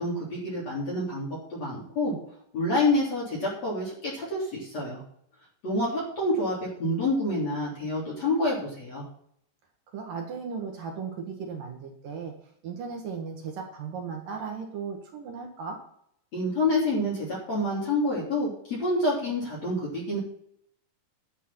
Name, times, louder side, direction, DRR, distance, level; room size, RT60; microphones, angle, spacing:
voice 1, 0.0-2.2 2.5-5.0 5.6-9.0 16.3-20.2, left 1 dB, 40° left, -6 dB, 4.4 m, -28 dB
voice 2, 9.9-12.4 12.6-15.8, right 5 dB, 60° right, 2 dB, 2.8 m, -36 dB
10.5 x 8.3 x 5.8 m, 0.68 s
omnidirectional pair, 5.2 m